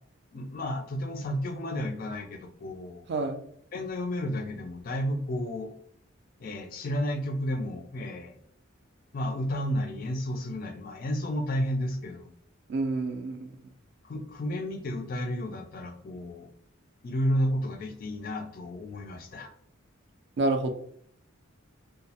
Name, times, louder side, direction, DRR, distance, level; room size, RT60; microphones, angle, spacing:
voice 1, 0.3-3.1 3.7-5.7 6.4-8.4 9.1-12.3 14.0-16.5 17.0-19.5, equal, 45° left, 5 dB, 0.3 m, -32 dB
voice 2, 3.1-3.4 12.7-13.5 20.4-20.7, right 2 dB, 55° right, 6 dB, 0.3 m, -28 dB
2.2 x 2.0 x 2.7 m, 0.65 s
head